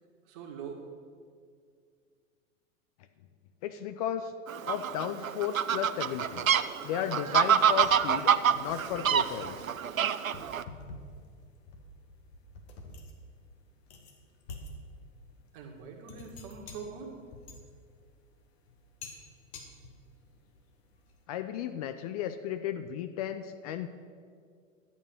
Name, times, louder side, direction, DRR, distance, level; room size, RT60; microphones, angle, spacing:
voice 1, 0.2-0.8 15.5-17.2, right 6 dB, 40° right, 1 dB, 2.1 m, -43 dB
voice 2, 3.6-4.3 4.6-6.5 6.8-8.3 8.6-9.7 21.3-23.9, left 10 dB, 30° left, 9 dB, 0.4 m, -34 dB
Fowl, 4.5-10.6, right 8 dB, 80° right, 0.6 m, -27 dB
sound 1, 6.1-21.3, left 2 dB, 55° left, 1.7 m, -50 dB
11.5 x 8.7 x 6.5 m, 2.1 s
figure-of-eight pair, 95°, 40 cm